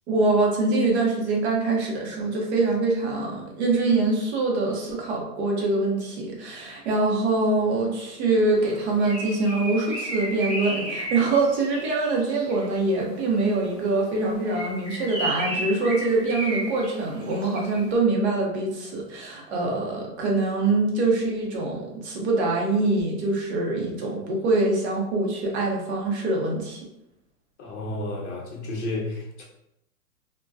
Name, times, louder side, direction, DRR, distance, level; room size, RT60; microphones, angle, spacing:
voice 1, 0.1-26.8, right 3 dB, 45° right, -1 dB, 0.7 m, -24 dB
Bird, 8.6-12.7 14.3-17.9, right 1 dB, 15° right, 1.1 m, -33 dB
voice 2, 27.6-29.4, left 2 dB, 45° left, -2 dB, 0.7 m, -32 dB
2.5 x 2.2 x 2.2 m, 0.86 s
hypercardioid pair, 150°, 49 cm